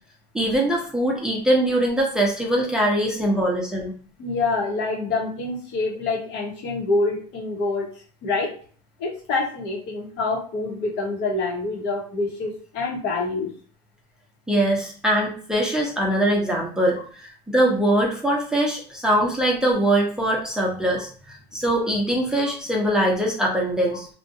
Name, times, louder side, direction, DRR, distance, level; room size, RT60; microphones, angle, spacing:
voice 1, 0.3-3.9 14.5-24.1, right 1 dB, 5° right, -3 dB, 0.7 m, -22 dB
voice 2, 4.2-7.9 8.2-8.5 9.0-13.5, left 3 dB, 55° left, -1 dB, 1.0 m, -26 dB
2.5 x 2.2 x 2.6 m, 0.43 s
supercardioid pair, 100°, 21 cm